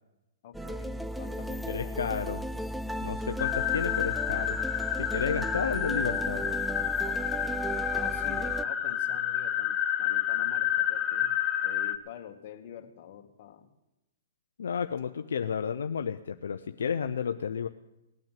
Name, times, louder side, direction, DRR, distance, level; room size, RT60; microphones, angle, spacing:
voice 1, 0.4-2.3 5.0-5.5 7.0-7.5 7.9-11.3 11.6-13.7, left 9 dB, 45° left, 3 dB, 2.1 m, -47 dB
sound 1, 0.5-8.7, right 1 dB, ahead, 0.5 m, -35 dB
voice 2, 1.7-2.4 3.0-4.6 5.0-6.5 14.6-17.7, left 7 dB, 80° left, 7 dB, 0.7 m, -32 dB
sound 2, 3.4-12.0, left 10 dB, 25° left, 1.0 m, -29 dB
18.5 x 9.2 x 7.6 m, 0.96 s
hypercardioid pair, 140°, 0 cm